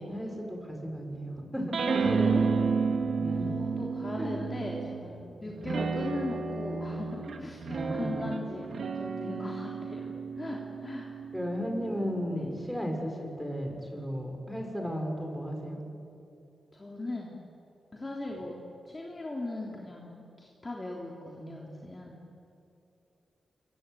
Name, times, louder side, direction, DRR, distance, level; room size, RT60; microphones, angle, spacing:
voice 1, 0.0-1.8 3.2-3.5 4.1-4.4 5.4-5.7 7.7-8.3 11.3-15.8, equal, ahead, 2 dB, 5.6 m, -35 dB
sound 1, 1.7-5.1 5.6-12.4, right 5 dB, 65° right, 2.3 m, -31 dB
voice 2, 1.8-2.4 3.5-11.2 12.3-12.4 16.7-17.4 17.9-18.6 18.8-22.2, left 2 dB, 25° left, -2 dB, 3.4 m, -39 dB
27.0 x 24.0 x 9.2 m, 2.7 s
wide cardioid pair, 120°, 0 cm